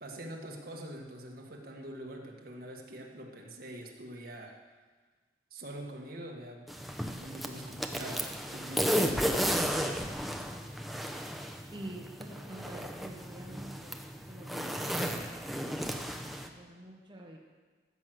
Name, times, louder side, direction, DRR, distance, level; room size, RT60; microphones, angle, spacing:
voice 1, 0.0-4.5 5.5-6.7 7.2-9.6, right 1 dB, 55° right, 1 dB, 1.7 m, -44 dB
sound 1, 6.7-16.5, equal, ahead, 0.7 m, -34 dB
voice 2, 11.7-17.4, right 1 dB, 25° right, -2 dB, 1.2 m, -47 dB
14.0 x 6.3 x 7.8 m, 1.4 s
head